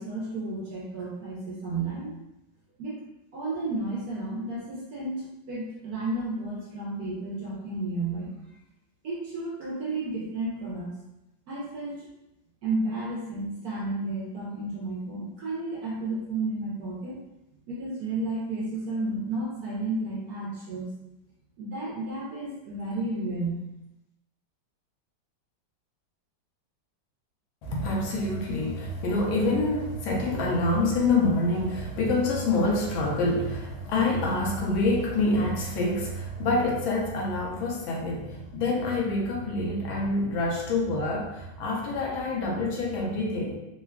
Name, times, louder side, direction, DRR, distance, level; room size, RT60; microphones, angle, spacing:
voice 1, 0.0-2.1 2.8-2.9 3.3-8.3 9.0-10.9 11.5-12.1 12.6-17.2 17.7-20.9 21.6-23.6, right 2 dB, 70° right, -5 dB, 0.9 m, -32 dB
voice 2, 27.6-43.6, left 2 dB, 90° left, -2 dB, 1.5 m, -26 dB
3.7 x 2.3 x 2.2 m, 0.93 s
omnidirectional pair, 2.1 m